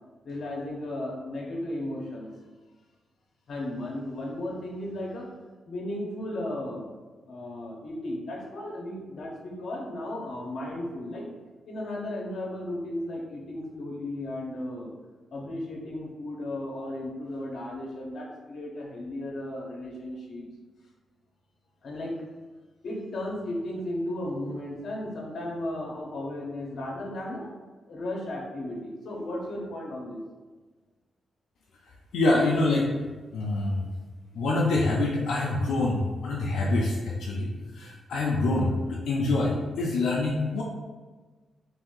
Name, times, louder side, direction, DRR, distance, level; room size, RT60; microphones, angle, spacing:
voice 1, 0.2-2.3 3.5-5.3 5.7-6.8 7.2-11.3 11.7-14.9 15.3-20.5 21.8-22.1 22.8-27.5 27.9-30.2, left 1 dB, 55° left, -2 dB, 0.9 m, -35 dB
voice 2, 32.1-32.9 33.3-33.9 34.3-40.6, left 2 dB, 85° left, -4 dB, 0.5 m, -26 dB
3.4 x 2.6 x 3.8 m, 1.3 s
wide cardioid pair, 160°, 0 cm